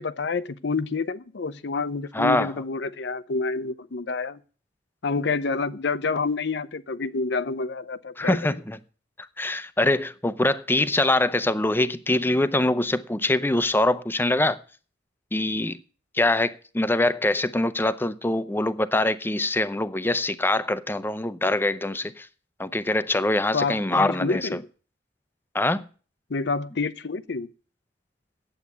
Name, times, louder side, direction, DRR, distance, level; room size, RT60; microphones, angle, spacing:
voice 1, 0.0-4.4 5.0-8.4 23.5-24.6 26.3-27.5, left 4 dB, 70° left, 0.7 m, -28 dB
voice 2, 2.1-2.5 8.2-8.8 9.4-14.6 15.3-15.8 16.1-22.3 22.6-24.6 25.5-25.8, left 2 dB, 10° left, 0.6 m, -24 dB
9.3 x 8.0 x 8.4 m
head